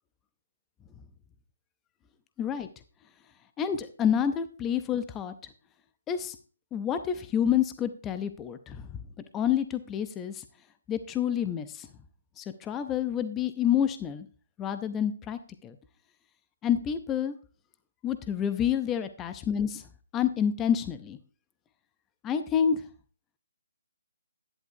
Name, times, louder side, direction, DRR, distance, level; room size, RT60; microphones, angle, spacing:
voice 1, 2.4-2.7 3.6-5.3 6.1-6.4 6.7-8.9 9.3-10.4 10.9-11.9 12.4-14.3 14.6-15.8 16.6-17.3 18.0-19.8 20.1-21.2 22.2-22.8, left 8 dB, 15° left, 10 dB, 0.6 m, -28 dB
11.0 x 11.0 x 2.7 m, 0.39 s
hypercardioid pair, 160°, 0 cm